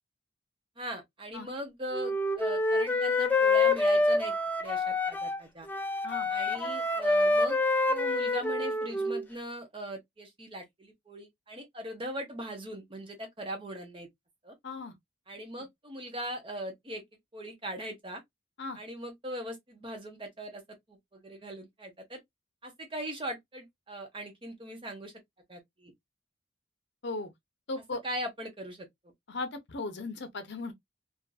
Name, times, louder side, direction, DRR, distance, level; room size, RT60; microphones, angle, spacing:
voice 1, 0.8-5.7 6.3-7.6 7.9-14.1 14.4-14.5 15.3-17.0 17.3-18.2 18.7-20.6 20.9-22.2 22.6-25.1 25.5-25.9 28.0-28.9, right 1 dB, 25° right, 0.8 m, -40 dB
Wind instrument woodwind instrument, 1.9-5.4 5.7-9.2, left 2 dB, 10° left, 0.3 m, -27 dB
voice 2, 14.6-14.9 18.6-18.8 27.0-27.3 27.7-28.0 29.3-30.7, left 3 dB, 65° left, 0.6 m, -37 dB
2.6 x 2.5 x 2.3 m
head